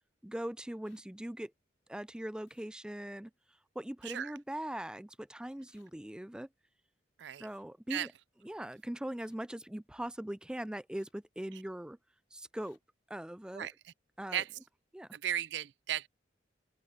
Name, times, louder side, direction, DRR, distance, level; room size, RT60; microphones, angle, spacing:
voice 1, 0.2-1.5 1.9-3.3 3.8-6.5 7.4-8.1 8.4-12.0 12.3-12.8 13.1-13.7 14.2-14.4 14.9-15.1, right 1 dB, 5° right, 0.3 m, -41 dB
sound 1, 0.8-1.0 2.5-2.6 4.0-4.2 5.7-5.9 7.4-7.6 9.2-9.4 10.9-11.1 12.6-12.8, left 7 dB, 85° left, 4.5 m, -70 dB
voice 2, 13.5-13.9 14.3-14.5 15.1-16.1, right 10 dB, 70° right, 0.4 m, -36 dB
open air
head